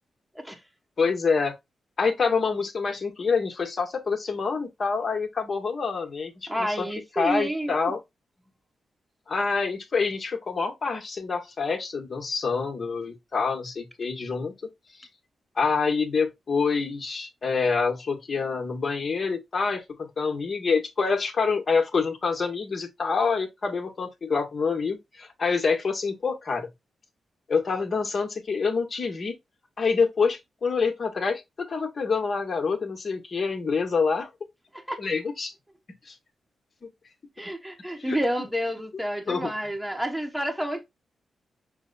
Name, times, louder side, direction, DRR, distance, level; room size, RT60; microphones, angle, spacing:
voice 1, 1.0-1.6 2.0-6.9 7.1-8.0 9.3-14.5 15.0-15.1 15.6-26.7 27.5-29.3 29.8-34.3 35.0-35.5 36.1-36.2 36.8-36.9 38.0-38.5 39.3-39.5, left 5 dB, 50° left, 1.4 m, -26 dB
voice 2, 6.5-7.8 34.9-35.0 37.4-40.8, equal, 5° right, 1.0 m, -29 dB
5.9 x 2.2 x 4.0 m
cardioid pair, 70°, 0 cm